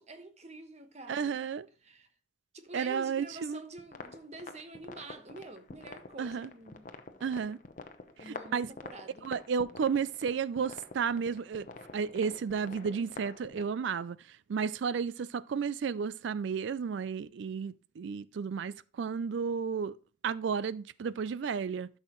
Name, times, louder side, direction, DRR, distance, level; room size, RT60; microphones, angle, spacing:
voice 1, 0.0-1.4 1.8-2.1 2.5-6.9 8.2-9.3, right 2 dB, 35° right, 1.1 m, -47 dB
voice 2, 1.1-1.7 2.7-3.6 6.2-6.5 7.2-7.6 8.2-8.7 9.2-11.7 11.9-14.2 14.5-20.0 20.2-21.9, right 6 dB, 70° right, 0.4 m, -32 dB
sound 1, 3.8-13.6, left 3 dB, 40° left, 0.8 m, -48 dB
12.0 x 6.3 x 3.1 m
head